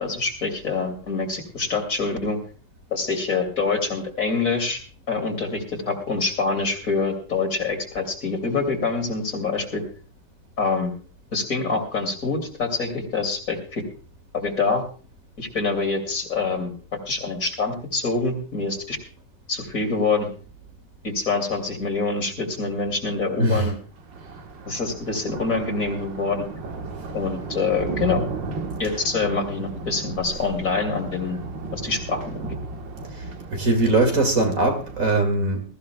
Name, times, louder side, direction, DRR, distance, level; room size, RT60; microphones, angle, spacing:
voice 1, 0.0-2.4 2.9-4.8 5.1-9.8 10.6-10.9 11.3-13.8 14.3-14.8 15.4-19.0 19.5-20.3 21.0-23.8 24.7-26.4 27.1-28.2 28.8-31.4 31.7-32.5, left 4 dB, 45° left, 3.2 m, -25 dB
Thunder, 23.9-35.1, right 3 dB, 85° right, 2.1 m, -35 dB
voice 2, 33.5-35.6, right 2 dB, 45° right, 2.5 m, -21 dB
21.0 x 14.5 x 2.3 m
omnidirectional pair, 1.9 m